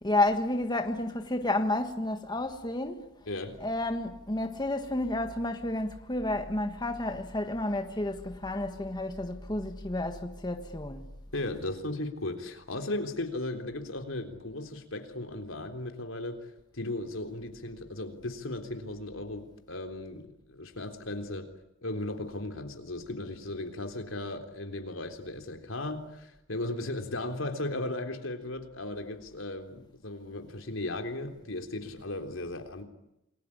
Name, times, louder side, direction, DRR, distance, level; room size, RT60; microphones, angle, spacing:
voice 1, 0.0-3.1 3.6-11.1, left 2 dB, 20° left, 1.5 m, -31 dB
voice 2, 3.3-3.6 11.3-16.4 16.7-21.5 21.8-32.8, left 2 dB, 75° left, 3.6 m, -36 dB
28.0 x 21.5 x 9.9 m
head